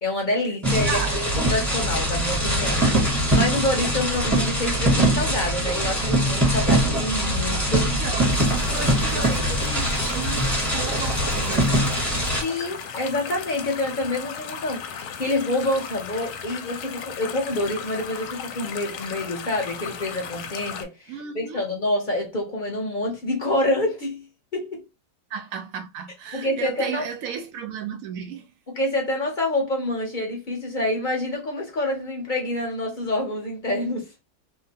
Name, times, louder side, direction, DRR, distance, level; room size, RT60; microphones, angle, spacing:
voice 1, 0.0-2.9 3.3-8.1 8.7-8.8 9.1-9.4 12.4-24.3 24.5-24.9 26.3-27.0 28.8-34.1, left 1 dB, 45° left, 0.6 m, -27 dB
sound 1, 0.6-12.4, right 1 dB, ahead, 0.9 m, -22 dB
voice 2, 0.7-1.2 7.8-12.0 21.1-21.7 25.3-28.5, right 7 dB, 70° right, 0.8 m, -34 dB
sound 2, 8.2-20.8, left 7 dB, 70° left, 1.0 m, -36 dB
2.9 x 2.2 x 2.7 m
omnidirectional pair, 1.9 m